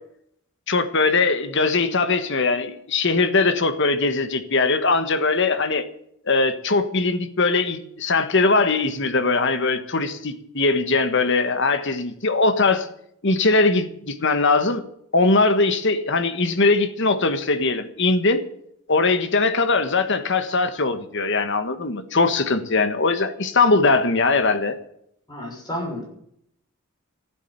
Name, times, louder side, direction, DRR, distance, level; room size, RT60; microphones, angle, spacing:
voice 1, 0.7-5.9 6.3-12.9 13.2-14.9 15.1-18.4 18.9-24.8, left 3 dB, 55° left, 1.4 m, -21 dB
voice 2, 25.3-26.1, left 1 dB, 20° left, 6.4 m, -31 dB
15.0 x 8.6 x 9.1 m
head